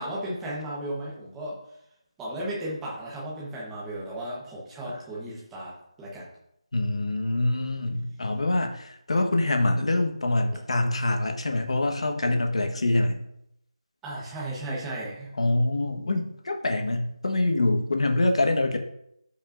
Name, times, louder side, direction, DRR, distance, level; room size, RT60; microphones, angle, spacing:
voice 1, 0.0-1.6 2.2-6.3 14.0-15.3, right 1 dB, 5° right, -6 dB, 1.1 m, -35 dB
voice 2, 6.7-13.2 15.4-18.8, left 2 dB, 60° left, 4 dB, 1.3 m, -25 dB
13.5 x 5.5 x 2.6 m, 0.78 s
figure-of-eight pair, 175°, 4 cm